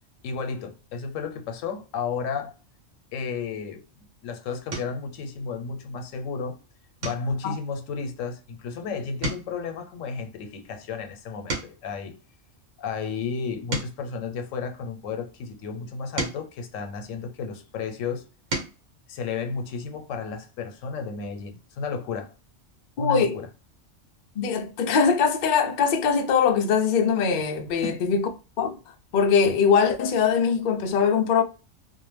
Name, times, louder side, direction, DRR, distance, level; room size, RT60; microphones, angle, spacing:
voice 1, 0.2-2.6 3.1-6.6 7.0-12.2 12.8-18.3 19.1-22.3 23.0-23.5 27.8-28.0, left 5 dB, 85° left, 1.0 m, -33 dB
sound 1, 4.7-5.1 5.6-5.9 6.3-6.5 7.0-8.8 9.1-12.0 12.6-15.1 15.7-17.6 18.1-18.9 20.3-20.4 20.7-20.8, right 1 dB, 75° right, 1.2 m, -36 dB
voice 2, 23.0-23.4 24.4-28.3 28.6-28.8 29.1-31.4, left 6 dB, 65° left, 0.4 m, -22 dB
2.5 x 2.1 x 3.2 m
omnidirectional pair, 1.3 m